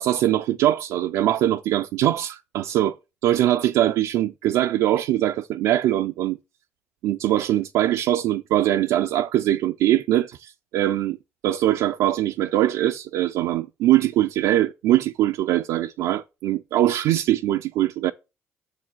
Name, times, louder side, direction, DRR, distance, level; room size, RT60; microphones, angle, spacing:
voice 1, 0.0-2.9 3.2-6.4 7.0-11.2 11.4-18.1, right 13 dB, 80° right, 0.4 m, -22 dB
7.0 x 4.8 x 5.9 m
supercardioid pair, 70°, 5 cm